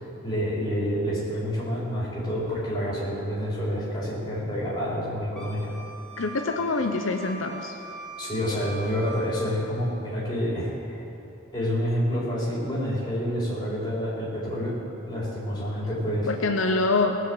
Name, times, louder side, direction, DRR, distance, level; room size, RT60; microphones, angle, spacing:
voice 1, 0.0-5.7 8.2-11.0 11.5-16.3, equal, 20° left, -8 dB, 4.0 m, -28 dB
Wind instrument woodwind instrument, 5.4-9.4, right 2 dB, 5° left, 1.2 m, -42 dB
voice 2, 6.2-7.8 16.3-17.2, left 3 dB, 80° left, 4 dB, 0.7 m, -25 dB
19.0 x 6.4 x 7.7 m, 3.0 s
head